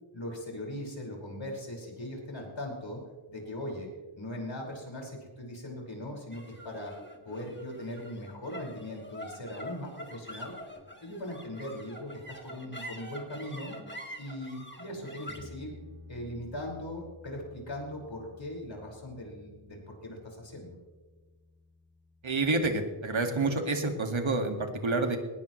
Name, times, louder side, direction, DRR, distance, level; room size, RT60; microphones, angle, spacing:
voice 1, 0.1-3.0 3.3-3.9 4.2-6.9 7.3-10.6 11.0-13.8 14.2-15.8 16.1-20.8, left 1 dB, 70° left, -1 dB, 5.3 m, -40 dB
sound 1, 6.3-22.9, equal, 25° left, 2.3 m, -47 dB
voice 2, 22.2-25.2, right 3 dB, 75° right, 4 dB, 2.1 m, -28 dB
19.5 x 19.0 x 3.2 m, 1.3 s
wide cardioid pair, 75°, 47 cm